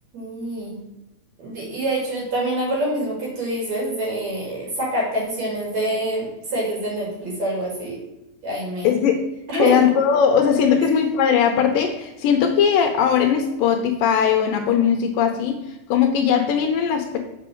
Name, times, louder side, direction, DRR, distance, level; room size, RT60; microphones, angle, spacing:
voice 1, 0.1-0.8 1.4-8.0 8.4-8.9 9.5-9.8 10.8-10.9, right 1 dB, 50° right, -4 dB, 3.5 m, -26 dB
voice 2, 8.8-9.2 9.6-17.2, left 8 dB, 75° left, 5 dB, 2.2 m, -19 dB
7.6 x 4.7 x 6.2 m, 0.97 s
omnidirectional pair, 4.3 m